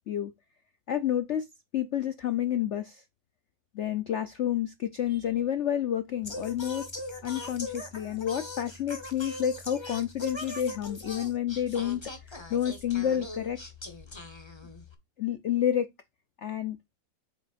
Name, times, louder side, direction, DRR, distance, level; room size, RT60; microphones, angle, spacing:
voice 1, 0.9-1.5 1.7-3.0 3.8-6.9 7.2-12.0 12.5-13.6 15.2-15.9 16.4-16.8, left 10 dB, 90° left, 0.6 m, -29 dB
Singing, 6.2-14.9, left 2 dB, 20° left, 1.0 m, -41 dB
8.5 x 5.8 x 2.5 m
omnidirectional pair, 2.1 m